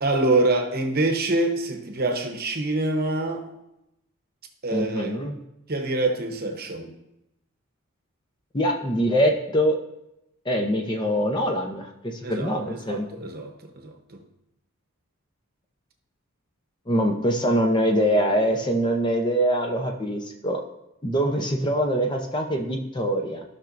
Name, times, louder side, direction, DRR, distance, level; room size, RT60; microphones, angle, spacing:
voice 1, 0.0-3.4 4.6-5.2 5.7-6.9 12.2-12.5 12.8-14.2, right 2 dB, 45° right, 0.9 m, -25 dB
voice 2, 4.7-5.4 8.5-9.8 10.5-13.1 16.9-20.6 21.0-23.4, equal, 20° left, 0.7 m, -24 dB
15.0 x 5.8 x 2.6 m
head